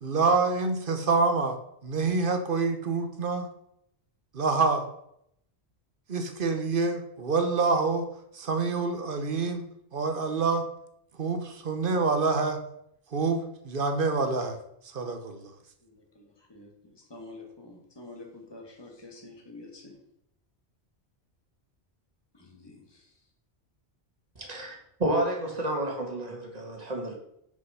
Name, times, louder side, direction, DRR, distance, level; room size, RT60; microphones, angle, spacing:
voice 1, 0.0-3.5 4.3-4.9 6.1-8.1 8.3-9.7 9.9-10.7 11.2-12.6 13.1-14.6 14.9-15.5, right 4 dB, 55° right, 7 dB, 1.0 m, -26 dB
voice 2, 15.8-20.0 22.3-23.2, left 2 dB, 25° left, 1 dB, 1.5 m, -48 dB
voice 3, 24.3-24.7 25.0-27.1, right 1 dB, 35° right, 1 dB, 1.7 m, -30 dB
6.5 x 5.3 x 5.5 m, 0.74 s
omnidirectional pair, 1.1 m